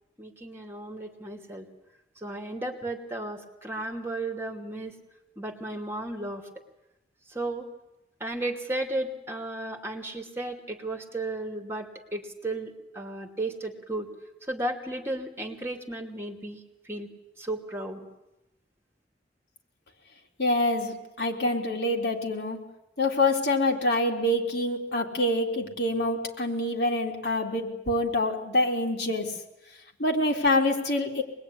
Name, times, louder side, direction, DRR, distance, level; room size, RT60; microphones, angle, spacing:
voice 1, 0.2-1.6 2.2-4.9 5.4-6.4 7.3-7.7 8.2-11.9 12.1-14.1 14.5-16.6 16.9-17.1 17.4-18.0, right 2 dB, 15° right, 3 dB, 2.7 m, -34 dB
voice 2, 20.4-22.6 23.0-29.3 30.0-31.2, left 1 dB, 70° left, 1 dB, 3.7 m, -26 dB
25.0 x 21.0 x 9.9 m, 0.92 s
head